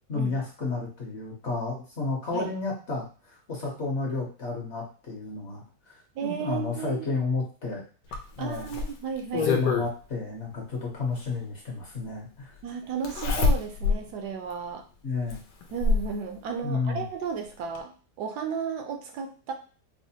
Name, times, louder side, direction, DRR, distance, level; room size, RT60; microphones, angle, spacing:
voice 1, 0.1-7.8 8.4-8.7 9.3-12.5 15.0-15.4 16.6-17.0, left 3 dB, 50° left, -2 dB, 1.0 m, -31 dB
voice 2, 6.2-7.2 8.4-9.5 12.6-14.8 15.7-19.5, right 6 dB, 75° right, 5 dB, 1.1 m, -34 dB
Zipper (clothing), 8.1-9.9 11.3-11.4 13.0-14.0 14.5-14.6 15.3-16.1 17.3-17.4 17.7-17.8, left 4 dB, 80° left, 1.3 m, -26 dB
4.8 x 2.1 x 2.7 m, 0.38 s
omnidirectional pair, 1.8 m